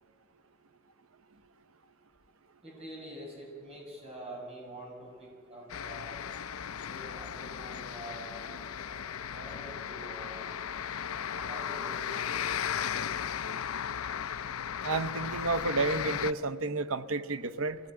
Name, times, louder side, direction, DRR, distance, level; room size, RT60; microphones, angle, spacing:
voice 1, 2.6-6.2 6.8-10.4 11.3-12.3 12.8-13.1, right 1 dB, 30° right, -2 dB, 7.0 m, -46 dB
sound 1, 5.7-16.3, left 8 dB, 85° left, 0.5 m, -36 dB
voice 2, 14.8-17.8, right 3 dB, 80° right, 11 dB, 0.9 m, -31 dB
24.5 x 17.5 x 8.9 m, 2.2 s
head